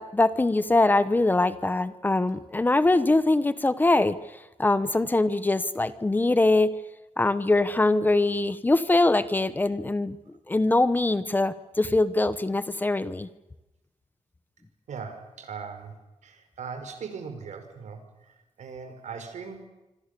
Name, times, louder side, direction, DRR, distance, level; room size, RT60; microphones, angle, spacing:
voice 1, 0.0-4.2 4.6-6.7 7.2-10.2 10.5-13.3, left 2 dB, 15° left, 14 dB, 1.0 m, -23 dB
voice 2, 14.9-15.9 16.2-19.7, right 5 dB, 80° right, 8 dB, 5.1 m, -39 dB
26.5 x 25.5 x 6.9 m, 0.99 s
wide cardioid pair, 175°, 12 cm